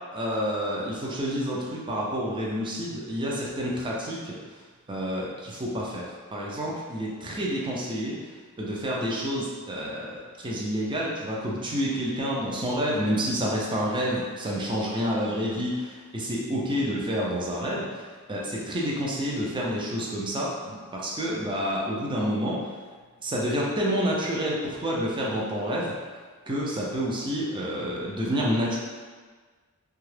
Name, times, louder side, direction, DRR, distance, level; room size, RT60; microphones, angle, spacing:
voice 1, 0.1-4.3 4.9-8.2 8.6-18.0 18.3-22.7 23.2-25.9 26.5-28.8, equal, 20° right, -4 dB, 0.5 m, -29 dB
2.7 x 2.3 x 3.2 m, 1.5 s
head